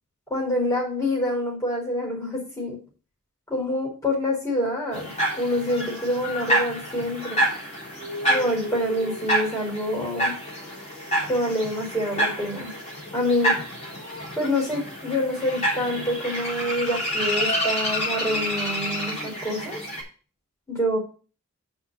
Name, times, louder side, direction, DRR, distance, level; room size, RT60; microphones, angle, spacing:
voice 1, 0.3-2.8 3.5-5.1 5.4-7.5 8.3-10.3 11.3-12.7 13.1-13.5 14.4-19.8 20.7-21.0, left 1 dB, 15° left, -3 dB, 4.5 m, -26 dB
sound 1, 4.9-20.0, equal, 30° left, 3.5 m, -28 dB
6.1 x 5.5 x 6.8 m, 0.37 s
head